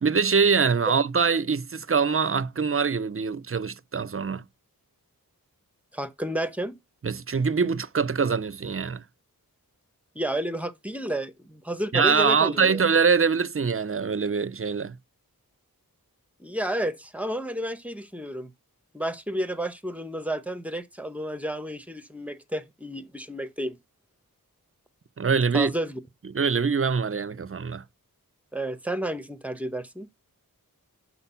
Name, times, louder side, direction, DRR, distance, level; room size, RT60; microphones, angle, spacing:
voice 1, 0.0-4.4 7.0-9.0 11.9-15.0 25.2-25.7 26.3-27.8, right 5 dB, 40° right, 0.5 m, -24 dB
voice 2, 5.9-6.7 10.2-12.8 16.4-18.5 18.9-23.8 25.5-26.0 28.5-30.1, right 1 dB, 5° right, 0.7 m, -31 dB
5.9 x 4.2 x 5.6 m
wide cardioid pair, 45°, 36 cm